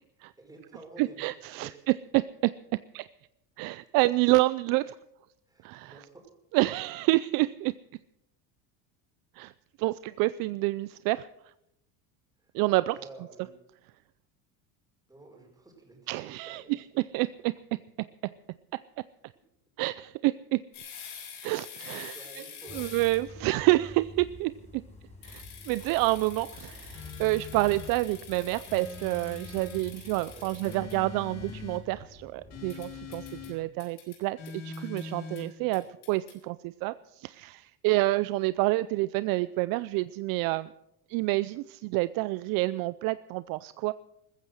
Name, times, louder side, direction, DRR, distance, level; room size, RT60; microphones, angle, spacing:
voice 1, 0.4-1.9 5.5-6.2 12.4-12.5 12.9-13.5 15.1-16.8 21.9-22.9 30.3-30.6 35.7-35.9, right 2 dB, 10° right, 0 dB, 5.0 m, -51 dB
voice 2, 1.0-2.5 2.9-3.1 3.6-4.9 5.6-5.9 6.5-7.7 9.4-9.5 9.8-11.3 12.5-12.9 16.1-17.5 18.2-18.3 19.8-20.6 21.4-22.2 22.7-24.8 25.2-40.7 41.1-43.9, right 20 dB, 55° right, 17 dB, 0.5 m, -28 dB
sound 1, 20.7-23.3 25.2-31.0 32.7-33.5 33.8-34.2 34.5-35.0 35.4-35.5 35.7-36.3, left 7 dB, 85° left, 7.2 m, -46 dB
sound 2, 22.7-33.5, left 1 dB, 15° left, 4.0 m, -49 dB
sound 3, 26.9-27.9 28.7-29.9 30.6-31.8 32.5-33.6 34.4-35.5, left 5 dB, 40° left, 3.6 m, -42 dB
15.0 x 14.5 x 6.3 m, 0.81 s
cardioid pair, 135°, 41 cm